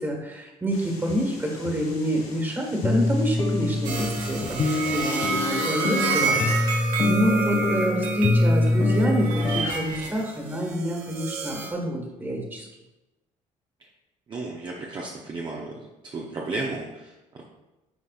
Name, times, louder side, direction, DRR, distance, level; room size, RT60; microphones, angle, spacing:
voice 1, 0.0-12.7, equal, 15° right, 0 dB, 1.6 m, -28 dB
sound 1, 0.7-6.5, left 3 dB, 50° left, 1.9 m, -46 dB
sound 2, 1.1-1.2 1.6-1.7 2.2-2.3 2.8-9.6, left 2 dB, 30° left, 0.5 m, -24 dB
sound 3, 3.8-11.7, right 3 dB, 65° right, 1.7 m, -29 dB
voice 2, 14.3-15.7 16.0-17.4, right 3 dB, 35° right, -2 dB, 0.8 m, -33 dB
9.3 x 5.2 x 2.5 m, 1.0 s
cardioid pair, 135°, 14 cm